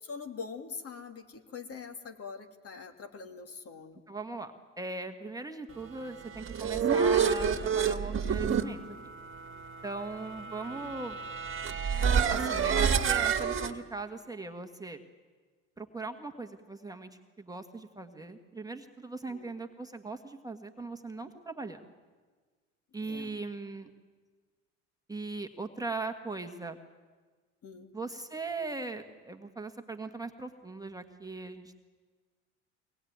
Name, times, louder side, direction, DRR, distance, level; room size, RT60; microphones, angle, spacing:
voice 1, 0.0-4.0 10.7-11.0 19.3-19.6 23.0-23.4 27.6-27.9, left 5 dB, 40° left, 6 dB, 2.7 m, -44 dB
voice 2, 4.1-8.8 9.8-11.2 12.3-15.0 15.8-17.1 17.4-21.9 22.9-23.9 25.1-26.8 27.9-31.7, right 3 dB, 10° right, 5 dB, 1.6 m, -39 dB
sound 1, 6.2-13.7, right 7 dB, 35° right, 1.9 m, -29 dB
23.5 x 19.5 x 9.5 m, 1.4 s
hypercardioid pair, 80°, 37 cm